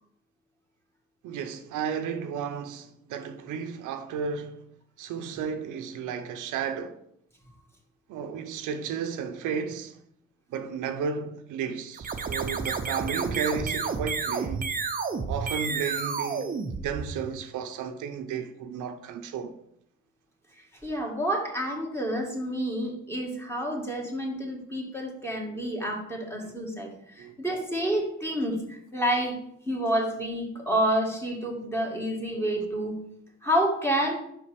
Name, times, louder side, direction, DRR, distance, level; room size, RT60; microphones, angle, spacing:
voice 1, 1.2-4.6 5.0-7.0 8.1-10.0 10.5-14.7 15.3-19.6 27.2-27.4, right 6 dB, 85° right, 0.7 m, -33 dB
sound 1, 11.9-17.4, right 5 dB, 30° right, 0.7 m, -31 dB
voice 2, 20.8-29.4 29.7-33.0 33.4-34.2, equal, 10° left, 1.9 m, -29 dB
5.5 x 5.2 x 5.1 m
cardioid pair, 90°, 30 cm